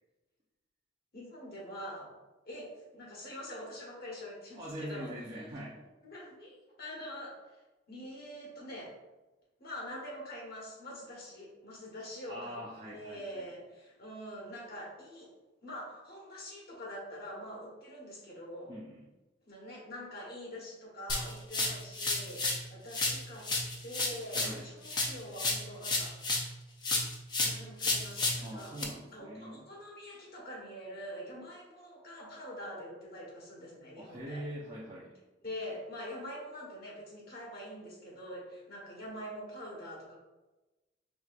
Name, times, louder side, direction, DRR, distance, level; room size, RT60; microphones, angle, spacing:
voice 1, 1.1-2.1 2.4-5.5 6.0-7.3 7.9-8.9 9.6-12.6 12.8-15.3 15.6-18.7 19.5-23.5 23.8-26.1 27.4-28.7 29.1-34.4 35.4-40.2, equal, 55° left, -4 dB, 1.4 m, -45 dB
voice 2, 4.5-5.8 12.3-13.4 18.7-19.0 24.3-24.7 28.4-29.6 34.0-35.1, equal, 25° right, -7 dB, 0.5 m, -43 dB
sound 1, 21.1-22.6 22.9-26.5 26.8-28.8, left 2 dB, 25° left, 0.5 m, -32 dB
4.6 x 3.4 x 2.5 m, 1.1 s
head